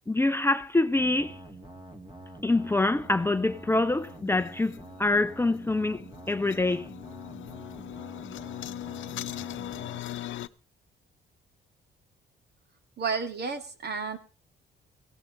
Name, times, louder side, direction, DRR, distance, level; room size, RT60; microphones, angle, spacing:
voice 1, 0.1-1.4 2.4-6.9, left 2 dB, 10° left, 0.6 m, -25 dB
sound 1, 1.0-10.0, right 1 dB, 25° right, 3.1 m, -46 dB
sound 2, 2.5-10.5, left 13 dB, 80° left, 0.8 m, -41 dB
voice 2, 13.0-14.2, right 5 dB, 55° right, 2.6 m, -31 dB
18.0 x 16.5 x 3.2 m
cardioid pair, 90°, 20 cm